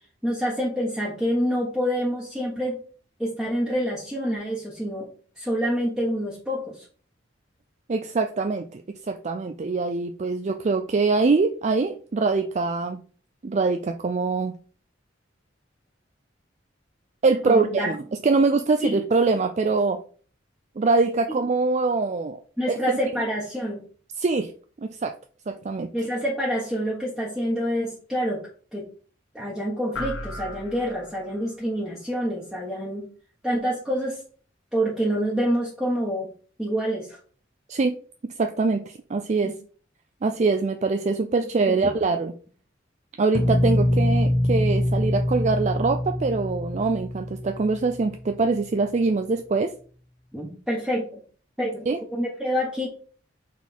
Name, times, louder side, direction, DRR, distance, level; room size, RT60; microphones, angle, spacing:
voice 1, 0.2-2.8 3.2-5.1 5.4-6.8 17.5-17.9 18.8-19.0 22.6-23.8 25.9-28.4 28.7-28.8 29.3-33.1 33.4-34.2 34.7-36.3 36.6-37.2 39.4-39.5 41.7-41.8 50.3-51.2 51.6-52.9, equal, ahead, -6 dB, 1.3 m, -27 dB
voice 2, 7.9-13.0 13.4-14.6 17.2-18.0 18.2-20.0 20.8-22.4 22.7-22.8 24.2-24.5 24.8-25.1 25.5-25.9 37.7-38.0 38.2-39.5 40.2-42.4 43.2-49.7 51.9-52.0, right 3 dB, 35° right, 7 dB, 0.4 m, -23 dB
sound 1, 29.9-31.5, left 2 dB, 90° left, 0.9 m, -36 dB
sound 2, 43.3-48.2, left 1 dB, 30° left, 0.6 m, -24 dB
5.8 x 4.3 x 4.3 m, 0.42 s
head